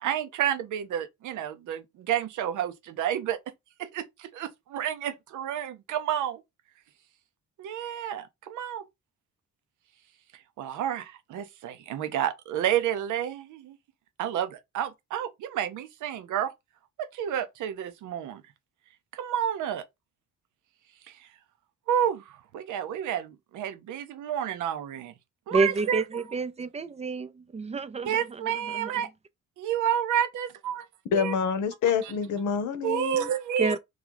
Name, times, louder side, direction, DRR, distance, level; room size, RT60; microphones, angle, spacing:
voice 1, 0.0-3.4 3.8-6.4 7.6-8.8 10.6-13.8 14.2-16.5 17.0-18.4 19.1-19.8 21.1-21.3 21.9-25.1 25.5-26.0 28.0-29.1 29.6-30.9 31.1-31.3 32.0-32.1 32.8-33.7, right 10 dB, 80° right, 0.7 m, -30 dB
voice 2, 25.5-28.9 33.6-33.8, right 4 dB, 20° right, 0.4 m, -29 dB
voice 3, 31.1-33.3, left 7 dB, 75° left, 0.8 m, -27 dB
3.1 x 2.3 x 3.8 m
cardioid pair, 90°, 30 cm